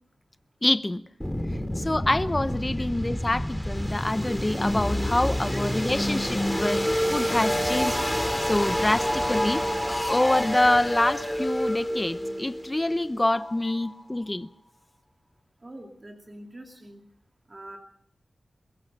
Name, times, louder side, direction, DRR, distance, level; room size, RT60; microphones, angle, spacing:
voice 1, 0.6-1.0 1.8-6.8 7.1-8.0 8.5-9.6 10.1-14.5, left 1 dB, 25° left, 0.8 m, -26 dB
sound 1, 1.2-14.0, equal, 5° left, 2.3 m, -28 dB
voice 2, 5.1-5.6 13.6-13.7 15.6-17.0 17.5-17.8, right 1 dB, 35° right, 2.6 m, -45 dB
23.5 x 21.5 x 5.4 m
cardioid pair, 65°, 0 cm